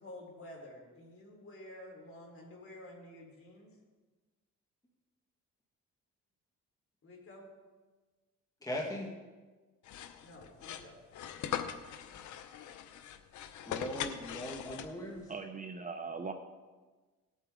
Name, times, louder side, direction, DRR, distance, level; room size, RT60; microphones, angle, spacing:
voice 1, 0.0-3.7 7.0-7.5 10.2-11.0, left 1 dB, 45° left, 0 dB, 4.0 m, -50 dB
voice 2, 8.6-9.1 13.6-15.3, equal, 10° left, -1 dB, 1.7 m, -39 dB
sound 1, 9.8-15.2, left 9 dB, 75° left, 0.8 m, -41 dB
voice 3, 15.3-16.3, right 4 dB, 25° right, 6 dB, 0.8 m, -40 dB
18.5 x 8.3 x 3.8 m, 1.3 s
cardioid pair, 90°, 30 cm